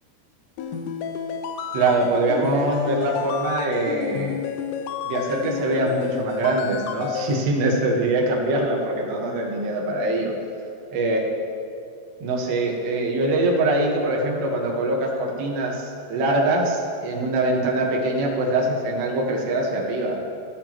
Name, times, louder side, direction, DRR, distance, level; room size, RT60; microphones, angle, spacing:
sound 1, 0.6-7.4, left 8 dB, 85° left, 2.7 m, -31 dB
voice 1, 1.7-4.4 5.0-10.3 10.9-11.3 12.2-20.2, right 2 dB, 80° right, -1 dB, 3.6 m, -23 dB
14.5 x 11.0 x 3.0 m, 2.4 s
omnidirectional pair, 4.9 m